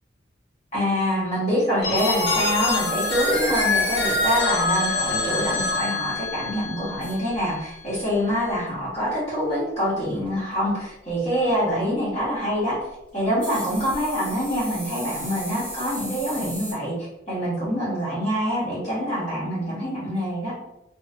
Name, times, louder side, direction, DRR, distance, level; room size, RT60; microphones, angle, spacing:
voice 1, 0.7-12.8 13.1-20.5, equal, 35° left, -9 dB, 1.4 m, -25 dB
Telephone, 1.8-7.6, left 3 dB, 70° left, 1.0 m, -25 dB
sound 1, 1.9-4.4 6.6-6.7 7.0-7.5 8.7-8.8 10.3-10.4 13.4-16.7, equal, 10° left, 1.4 m, -36 dB
3.2 x 3.0 x 2.4 m, 0.89 s
head